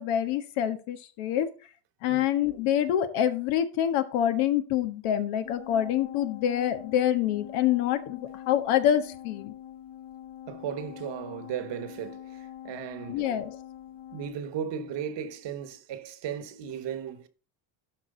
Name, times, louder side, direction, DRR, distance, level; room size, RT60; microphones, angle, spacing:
voice 1, 0.0-1.5 2.0-9.5 13.1-13.6, left 10 dB, 85° left, 1.5 m, -26 dB
sound 1, 5.4-14.3, left 11 dB, 60° left, 1.8 m, -44 dB
voice 2, 10.5-13.3 14.1-17.3, right 8 dB, 60° right, 1.3 m, -36 dB
12.0 x 4.8 x 3.9 m
cardioid pair, 105°, 49 cm